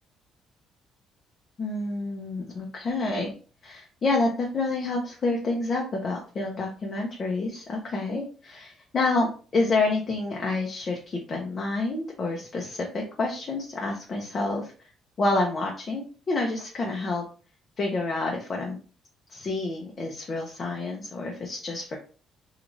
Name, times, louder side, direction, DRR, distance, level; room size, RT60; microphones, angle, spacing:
voice 1, 1.6-3.3 3.6-14.7 15.2-17.2 17.8-18.8 19.3-22.0, left 3 dB, 40° left, -1 dB, 0.5 m, -28 dB
3.0 x 2.4 x 2.5 m, 0.39 s
cardioid pair, 130°, 0 cm